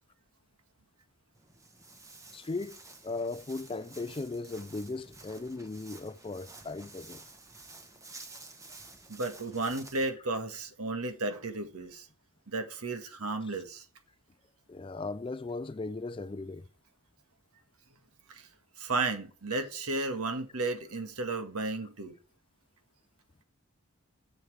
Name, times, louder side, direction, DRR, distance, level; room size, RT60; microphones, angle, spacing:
Walk footsteps, 1.3-10.1, right 3 dB, 15° right, 0.9 m, -51 dB
voice 1, 2.3-2.8 3.0-7.2 14.7-16.6 19.5-19.6, left 3 dB, 25° left, 0.3 m, -37 dB
voice 2, 9.1-12.1 12.5-13.8 18.3-18.5 18.8-22.1, right 3 dB, 85° right, 1.6 m, -33 dB
11.0 x 7.1 x 3.3 m
head